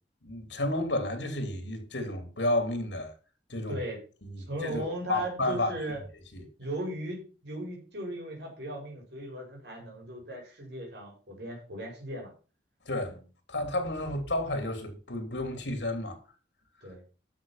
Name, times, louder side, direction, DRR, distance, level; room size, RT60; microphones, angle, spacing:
voice 1, 0.2-3.1 3.5-3.8 4.2-5.7 6.3-6.4 12.8-13.2 13.5-16.2, left 1 dB, 80° left, 3.1 m, -31 dB
voice 2, 3.7-4.0 4.4-6.0 6.6-12.3 13.0-13.2 16.8-17.0, right 1 dB, 75° right, 5.1 m, -37 dB
13.0 x 6.5 x 5.7 m
head